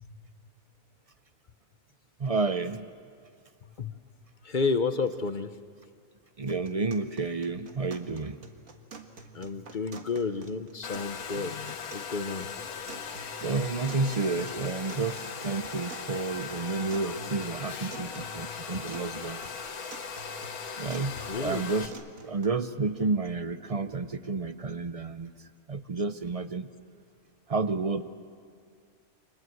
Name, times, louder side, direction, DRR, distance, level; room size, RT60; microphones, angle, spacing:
voice 1, 2.2-2.9 6.4-8.4 13.4-19.4 20.8-21.9 22.2-25.3 25.7-26.7 27.5-28.0, right 3 dB, 40° right, 11 dB, 0.5 m, -30 dB
voice 2, 4.5-5.5 9.3-12.5 21.3-21.7, left 4 dB, 40° left, 10 dB, 0.7 m, -31 dB
sound 1, 6.5-22.5, right 3 dB, 65° right, 2.0 m, -48 dB
Domestic sounds home sounds, 10.8-21.9, left 6 dB, 75° left, 1.6 m, -39 dB
29.0 x 25.5 x 7.8 m, 2.2 s
omnidirectional pair, 1.6 m